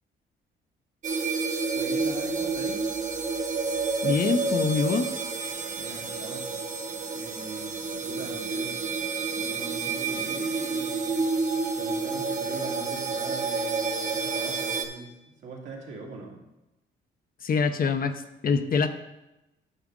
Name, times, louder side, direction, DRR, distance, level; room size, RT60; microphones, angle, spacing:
sound 1, 1.0-14.8, right 4 dB, 40° right, 1.0 m, -29 dB
voice 1, 1.7-2.8 5.7-6.6 7.1-8.8 9.4-11.2 11.8-16.4, right 3 dB, 75° right, -2 dB, 2.2 m, -41 dB
voice 2, 4.0-5.1 17.4-18.9, left 5 dB, 45° left, 8 dB, 0.7 m, -25 dB
9.7 x 6.0 x 3.8 m, 0.94 s
cardioid pair, 90°, 20 cm